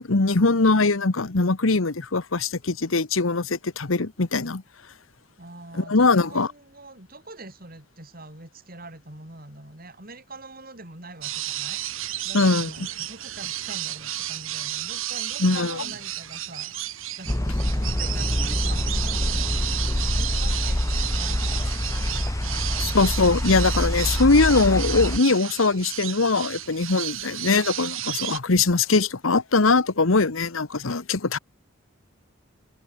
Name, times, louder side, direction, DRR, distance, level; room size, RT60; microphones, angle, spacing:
voice 1, 0.0-4.6 5.7-6.5 12.3-12.7 15.4-15.8 22.8-31.4, left 3 dB, 85° left, 1.2 m, -21 dB
voice 2, 5.4-21.7 21.9-23.1 28.7-28.9, right 2 dB, 45° right, 7.4 m, -44 dB
sound 1, 11.2-28.4, right 14 dB, 85° right, 2.0 m, -32 dB
sound 2, 17.3-25.2, left 1 dB, 15° left, 0.9 m, -26 dB
open air
head